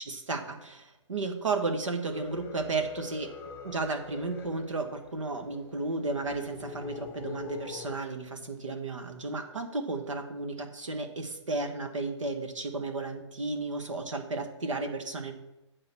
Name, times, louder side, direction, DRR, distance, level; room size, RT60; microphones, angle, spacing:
voice 1, 0.1-3.3 3.6-15.3, right 3 dB, 80° right, 5 dB, 1.5 m, -33 dB
sound 1, 2.1-8.0, left 7 dB, 15° left, 0.7 m, -44 dB
8.9 x 4.0 x 6.8 m, 0.96 s
hypercardioid pair, 135°, 16 cm